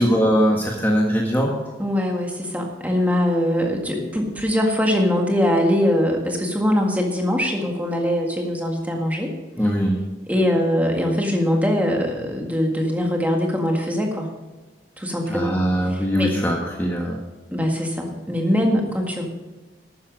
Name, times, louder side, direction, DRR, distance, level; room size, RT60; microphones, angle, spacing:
voice 1, 0.0-1.5 9.6-10.0 15.3-17.2, equal, 10° left, -1 dB, 1.4 m, -21 dB
voice 2, 1.8-9.3 10.3-14.3 15.0-15.6 15.9-16.3 17.5-19.3, equal, 10° right, 1 dB, 1.8 m, -22 dB
12.5 x 9.5 x 5.2 m, 1.2 s
head